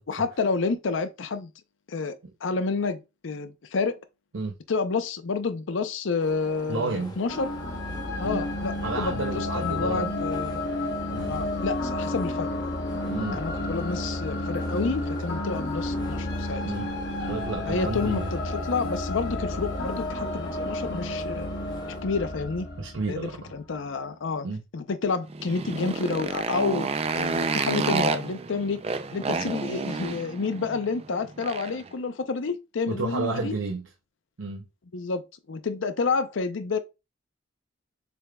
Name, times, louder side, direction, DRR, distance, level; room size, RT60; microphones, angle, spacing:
voice 1, 0.1-1.5 1.9-2.1 2.4-4.0 4.7-7.5 8.2-10.7 11.3-12.5 13.3-16.6 17.7-21.5 22.0-22.7 23.1-24.5 24.7-26.9 27.1-28.8 29.1-33.5 34.9-35.2 35.5-36.8, left 4 dB, 80° left, 0.5 m, -29 dB
sound 1, 6.2-22.0, left 1 dB, 20° left, 0.9 m, -44 dB
voice 2, 6.7-7.2 8.2-8.4 8.8-10.1 11.1-11.4 13.1-13.7 16.6-16.9 17.3-18.3 22.8-23.5 24.4-24.6 32.9-33.9 34.4-34.7, right 3 dB, 80° right, 0.6 m, -31 dB
sound 2, 7.3-23.5, left 2 dB, 55° left, 0.9 m, -31 dB
Motorcycle, 25.3-31.9, right 4 dB, 30° right, 0.4 m, -30 dB
6.8 x 3.4 x 2.2 m
head